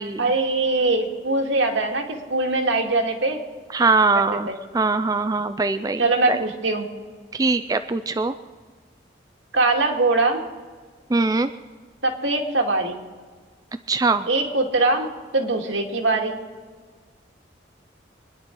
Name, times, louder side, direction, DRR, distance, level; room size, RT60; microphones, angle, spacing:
voice 1, 0.2-3.4 4.1-4.6 6.0-6.9 9.5-10.4 12.0-13.0 14.3-16.4, right 2 dB, 85° right, 2 dB, 2.0 m, -22 dB
voice 2, 3.7-6.0 6.3-6.4 7.3-8.3 11.1-11.5 13.9-14.3, right 3 dB, 20° right, 9 dB, 0.3 m, -22 dB
25.0 x 10.5 x 4.5 m, 1.5 s
head